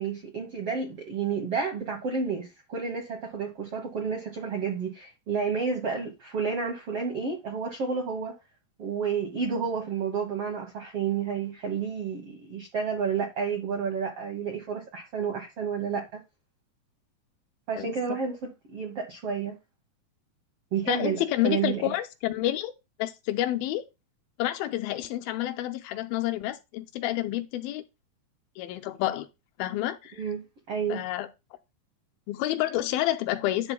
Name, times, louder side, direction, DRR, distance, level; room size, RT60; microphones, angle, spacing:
voice 1, 0.0-8.4 8.8-16.2 17.7-18.4 18.7-19.6 20.7-21.9 30.1-31.0, right 6 dB, 65° right, 1.5 m, -30 dB
voice 2, 17.8-18.2 20.9-22.7 23.0-23.8 24.4-27.8 28.6-29.3 29.6-30.2 30.9-31.3 32.3-33.7, left 14 dB, 85° left, 2.5 m, -29 dB
10.5 x 6.9 x 2.2 m
omnidirectional pair, 4.3 m